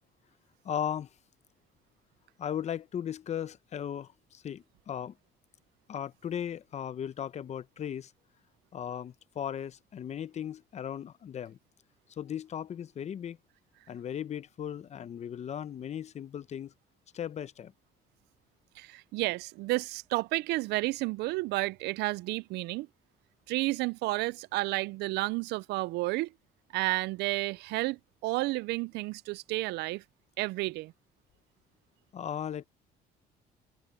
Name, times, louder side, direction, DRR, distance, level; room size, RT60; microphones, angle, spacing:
voice 1, 0.6-1.1 2.4-5.2 5.9-8.1 8.7-11.6 12.1-13.4 13.9-16.7 17.1-17.7 32.1-32.7, left 9 dB, 40° left, 0.7 m, -37 dB
voice 2, 18.8-22.9 23.5-26.3 26.7-30.0 30.4-30.9, right 20 dB, 85° right, 0.4 m, -31 dB
open air
cardioid pair, 110°, 17 cm